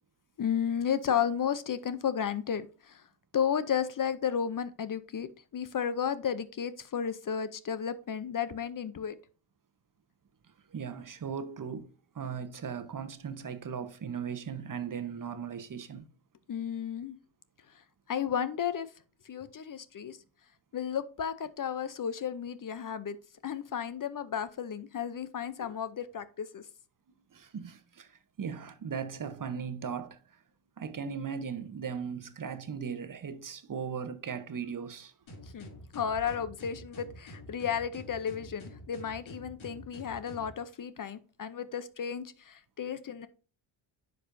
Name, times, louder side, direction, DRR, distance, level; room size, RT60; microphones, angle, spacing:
voice 1, 0.4-3.0 3.3-5.3 5.5-9.2 16.5-17.2 18.1-18.9 19.3-20.2 20.7-23.2 23.4-26.6 35.5-43.3, left 8 dB, 40° left, 0.7 m, -33 dB
voice 2, 10.7-16.0 27.3-30.2 30.8-35.1, right 6 dB, 40° right, 1.0 m, -38 dB
sound 1, 35.3-40.5, equal, 70° left, 2.7 m, -47 dB
9.9 x 5.4 x 2.6 m
cardioid pair, 65°, 49 cm